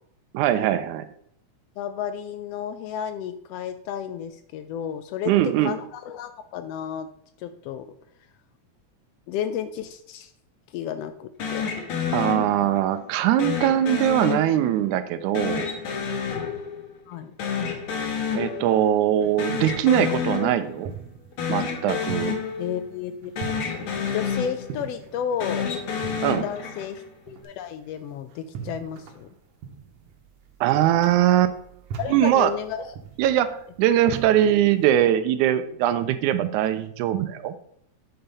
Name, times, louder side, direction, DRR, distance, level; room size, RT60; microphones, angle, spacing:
voice 1, 0.3-1.1 5.3-5.7 12.1-15.7 18.4-20.9 21.5-22.4 26.2-26.5 30.6-31.5 32.1-32.5 33.2-37.6, right 11 dB, 85° right, 11 dB, 2.0 m, -21 dB
voice 2, 1.8-5.3 5.6-7.1 7.4-7.8 9.3-10.3 10.7-11.7 17.1-17.3 22.6-23.5 24.1-25.7 26.4-29.3 32.0-32.9, left 9 dB, 85° left, 9 dB, 1.4 m, -32 dB
sound 1, 11.4-12.9 13.4-14.9 15.3-17.1 17.4-18.9 19.2-20.9 21.3-23.1 23.4-24.9 25.3-27.1, left 6 dB, 55° left, 1.7 m, -29 dB
sound 2, 19.1-35.0, right 7 dB, 65° right, 1.8 m, -42 dB
8.7 x 4.4 x 5.3 m, 0.70 s
omnidirectional pair, 3.4 m